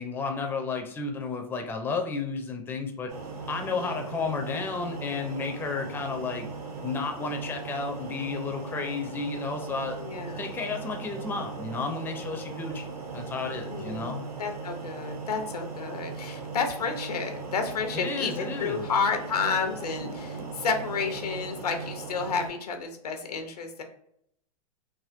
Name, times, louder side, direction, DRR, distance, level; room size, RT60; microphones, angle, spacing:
voice 1, 0.0-3.1 3.5-6.5 6.8-10.0 10.4-14.2 17.9-18.8, left 4 dB, 10° left, 3 dB, 0.4 m, -32 dB
sound 1, 3.1-22.5, right 4 dB, 75° right, 1.3 m, -38 dB
voice 2, 3.7-4.0 10.0-10.5 13.7-23.8, left 5 dB, 90° left, 5 dB, 0.8 m, -31 dB
3.5 x 2.2 x 2.5 m, 0.70 s
hypercardioid pair, 115°, 19 cm